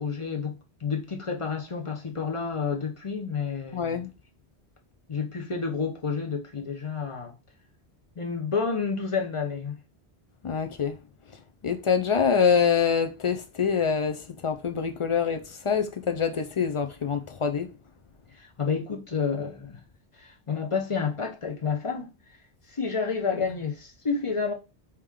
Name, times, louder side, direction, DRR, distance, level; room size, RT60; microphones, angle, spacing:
voice 1, 0.0-4.0 5.1-7.4 8.2-9.8 18.4-19.8 20.2-22.1 22.7-24.5, left 5 dB, 30° left, 0.8 m, -30 dB
voice 2, 3.7-4.1 10.4-11.0 11.3-17.7, left 6 dB, 55° left, 0.3 m, -25 dB
4.8 x 3.0 x 3.6 m
omnidirectional pair, 1.1 m